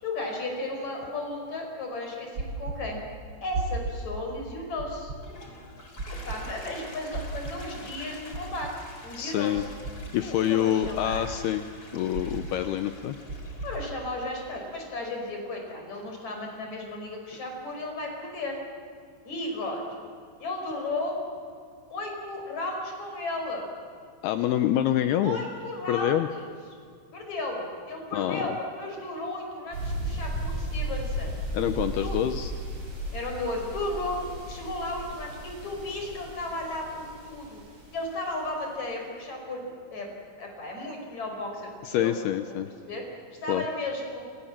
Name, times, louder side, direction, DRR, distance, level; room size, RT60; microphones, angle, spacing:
voice 1, 0.0-3.0 3.4-5.1 6.2-8.7 9.0-9.7 10.2-11.3 13.6-18.6 19.2-19.8 20.4-21.1 21.9-23.6 25.2-26.4 27.1-31.3 32.0-32.2 33.1-37.6 37.9-40.1 40.4-42.2 42.5-43.0 43.3-44.2, left 2 dB, 40° left, 2 dB, 6.5 m, -34 dB
sound 1, 2.4-2.8 3.5-3.9 4.8-5.2 6.0-6.4 7.1-7.5 8.3-8.7 9.5-9.9 10.8-11.2 12.1-12.5 13.3-13.7, right 3 dB, 30° right, 4.2 m, -34 dB
Toilet flush, 5.1-15.3, left 2 dB, 20° left, 3.5 m, -48 dB
voice 2, 9.2-9.6 10.1-11.6 11.9-13.2 24.2-25.4 25.9-26.3 28.1-28.4 31.5-32.5 41.8-42.7 43.5-43.6, left 11 dB, 75° left, 9 dB, 2.6 m, -26 dB
sound 2, 29.7-38.1, right 1 dB, 80° right, 9.9 m, -35 dB
29.0 x 27.5 x 7.5 m, 2.2 s
omnidirectional pair, 5.1 m